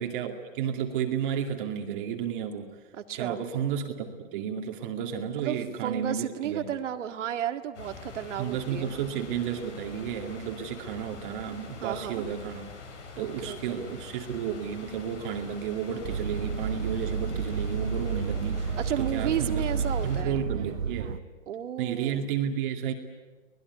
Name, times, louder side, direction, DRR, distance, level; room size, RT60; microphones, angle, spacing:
voice 1, 0.0-2.8 3.1-4.1 4.3-6.7 8.4-12.7 13.2-21.2 21.8-22.9, right 8 dB, 40° right, 2 dB, 2.5 m, -32 dB
voice 2, 3.1-3.4 5.4-9.0 11.8-12.2 13.2-13.8 18.8-20.4 21.5-22.3, right 10 dB, 65° right, 7 dB, 2.1 m, -33 dB
sound 1, 7.7-20.2, left 4 dB, 65° left, 7.8 m, -45 dB
sound 2, 16.0-21.2, right 5 dB, 85° right, 1.3 m, -31 dB
24.0 x 20.0 x 9.5 m, 1.3 s
hypercardioid pair, 150°, 39 cm